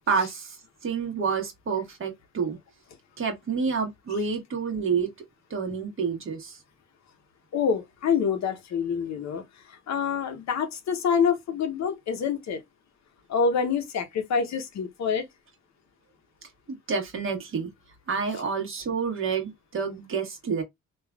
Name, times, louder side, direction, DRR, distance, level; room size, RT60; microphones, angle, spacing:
voice 1, 0.1-0.6 0.8-2.6 3.2-5.1 5.5-6.6 16.7-17.7 18.1-20.6, right 5 dB, 45° right, 1.2 m, -28 dB
voice 2, 7.5-12.6 13.3-15.3, left 6 dB, 65° left, 0.8 m, -26 dB
3.2 x 2.4 x 2.3 m
cardioid pair, 90°, 30 cm